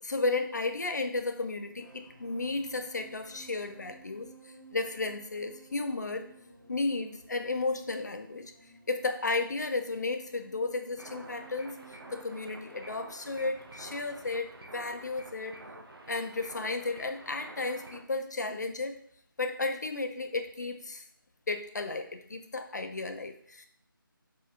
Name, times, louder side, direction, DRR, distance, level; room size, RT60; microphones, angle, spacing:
voice 1, 0.0-4.3 4.7-6.3 6.7-8.5 8.9-11.8 12.1-15.6 16.1-18.9 19.4-21.0 21.5-23.6, left 3 dB, 50° left, 7 dB, 0.4 m, -33 dB
sound 1, 1.4-18.1 18.4-18.7, right 2 dB, 55° right, 1.2 m, -57 dB
sound 2, 11.0-18.0, right 1 dB, 85° right, 0.6 m, -49 dB
4.3 x 2.2 x 2.5 m, 0.63 s
figure-of-eight pair, 160°, 12 cm